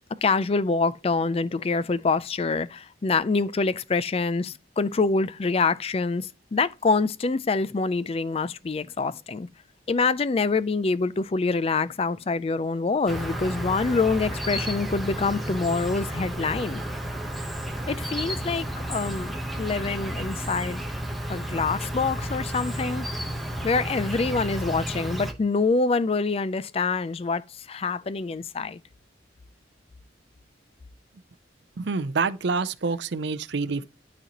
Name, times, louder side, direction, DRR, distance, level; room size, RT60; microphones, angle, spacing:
voice 1, 0.1-9.5 9.9-16.8 17.9-20.8 21.3-23.1 23.6-28.8, left 4 dB, 30° left, 0.4 m, -26 dB
Insect, 13.1-25.3, equal, ahead, 1.0 m, -32 dB
voice 2, 31.8-33.8, right 4 dB, 65° right, 0.5 m, -27 dB
11.5 x 4.1 x 2.9 m
head